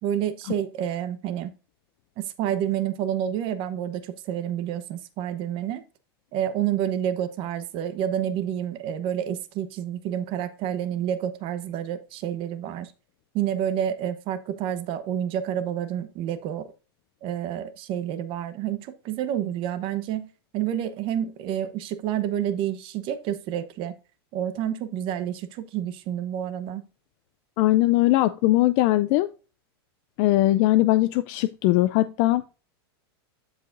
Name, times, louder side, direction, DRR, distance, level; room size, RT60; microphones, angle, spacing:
voice 1, 0.0-1.5 2.2-5.8 6.3-12.9 13.3-16.7 17.2-23.9 24.3-26.9, right 10 dB, 40° right, 0.9 m, -29 dB
voice 2, 27.6-29.3 30.2-32.6, left 17 dB, 45° left, 0.4 m, -20 dB
12.5 x 4.8 x 2.6 m
supercardioid pair, 135°, 13 cm